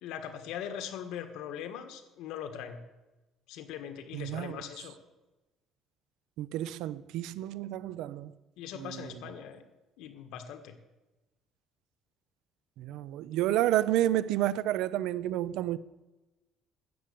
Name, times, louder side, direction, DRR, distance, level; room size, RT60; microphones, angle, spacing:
voice 1, 0.0-2.8 3.5-5.0 8.6-9.6 10.0-10.7, left 9 dB, 85° left, 1.5 m, -41 dB
voice 2, 4.1-4.6 6.4-8.3 8.7-9.2 12.8-15.8, right 13 dB, 80° right, 0.5 m, -30 dB
13.0 x 8.2 x 8.4 m
cardioid pair, 170°, 0 cm